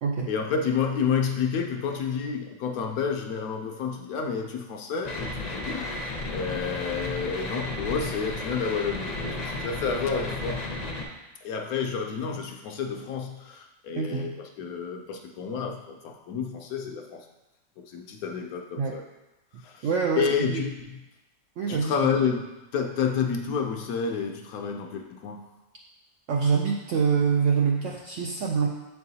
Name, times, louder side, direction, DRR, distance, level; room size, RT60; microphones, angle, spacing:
voice 1, 0.3-6.1 6.3-10.6 11.4-17.3 17.8-19.0 19.6-19.9 20.2-21.0 21.7-25.4, left 6 dB, 70° left, 3 dB, 1.0 m, -30 dB
sound 1, 5.0-11.0, left 2 dB, 40° left, 0.6 m, -33 dB
voice 2, 14.0-14.3 18.8-19.0 19.8-20.6 21.6-21.9 26.3-28.7, right 5 dB, 70° right, 0 dB, 0.7 m, -25 dB
7.5 x 4.6 x 2.7 m, 1.0 s
omnidirectional pair, 1.8 m